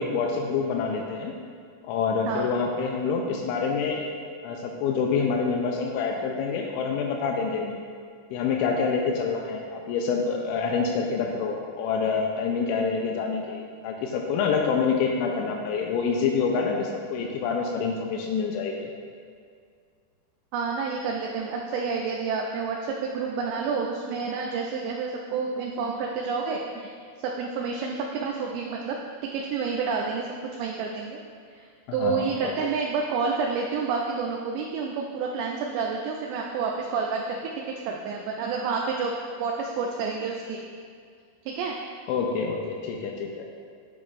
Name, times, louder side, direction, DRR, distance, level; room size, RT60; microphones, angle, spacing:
voice 1, 0.0-1.3 1.8-4.1 4.4-7.7 8.3-18.9 32.0-32.5 42.1-43.3, left 5 dB, 90° left, 1 dB, 3.0 m, -27 dB
voice 2, 20.5-29.0 29.3-30.3 30.5-31.2 31.5-40.6 41.5-41.8, right 5 dB, 80° right, -1 dB, 2.5 m, -29 dB
9.5 x 7.2 x 2.5 m, 2.1 s
omnidirectional pair, 5.3 m